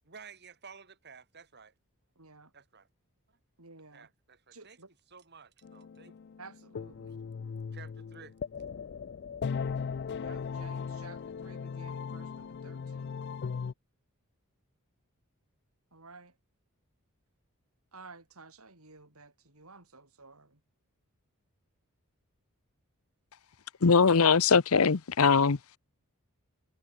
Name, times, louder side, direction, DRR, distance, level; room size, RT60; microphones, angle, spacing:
voice 1, 0.0-1.7 2.5-2.9 3.9-6.1 7.7-8.3, right 5 dB, 50° right, 3.8 m, -53 dB
voice 2, 2.2-2.5 3.6-4.1 4.5-4.9 6.4-7.2 10.2-13.2 15.9-16.3 17.9-20.5, right 3 dB, 75° right, 5.9 m, -53 dB
sound 1, 5.6-13.7, left 6 dB, 50° left, 0.4 m, -38 dB
voice 3, 23.8-25.6, left 5 dB, 70° left, 0.8 m, -21 dB
head